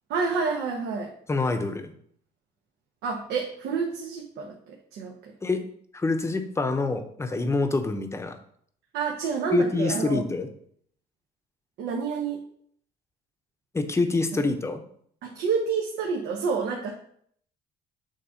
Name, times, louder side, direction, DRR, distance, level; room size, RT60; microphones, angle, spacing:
voice 1, 0.1-1.1 3.0-5.3 8.9-10.2 11.8-12.4 14.3-14.4 15.2-16.9, right 5 dB, 80° right, 0 dB, 1.0 m, -29 dB
voice 2, 1.3-1.9 5.4-5.6 5.9-8.4 9.5-10.5 13.7-14.8, left 3 dB, 15° left, 7 dB, 0.8 m, -26 dB
7.0 x 2.9 x 5.7 m, 0.63 s
cardioid pair, 110°, 17 cm